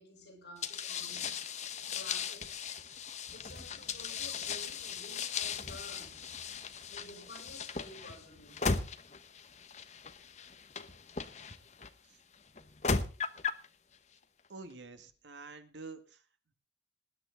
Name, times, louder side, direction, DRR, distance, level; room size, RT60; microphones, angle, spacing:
voice 1, 0.0-1.4 1.9-2.5 3.0-6.3 6.9-8.6, left 1 dB, 65° left, 6.6 m, -52 dB
sound 1, 0.6-11.9 12.6-13.7, left 5 dB, 40° left, 1.0 m, -37 dB
voice 2, 14.5-16.2, right 3 dB, 85° right, 2.0 m, -48 dB
19.5 x 11.0 x 3.8 m
head